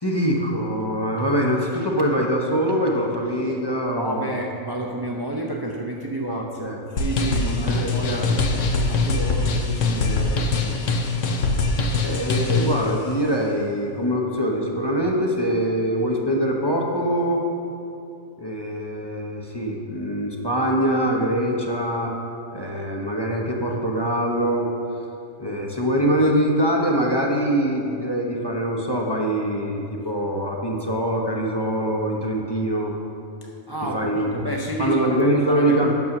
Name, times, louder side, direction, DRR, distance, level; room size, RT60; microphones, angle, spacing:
voice 1, 0.0-4.4 6.3-6.8 7.4-8.4 12.0-17.4 18.4-22.1 22.5-24.7 25.4-32.9 33.9-34.3 34.8-35.9, equal, 20° left, -1 dB, 0.8 m, -23 dB
voice 2, 3.9-10.8 33.4-35.9, right 2 dB, 25° right, -1 dB, 0.5 m, -30 dB
sound 1, 7.0-12.8, left 3 dB, 65° left, 1.2 m, -22 dB
9.6 x 7.1 x 6.0 m, 2.7 s
omnidirectional pair, 1.4 m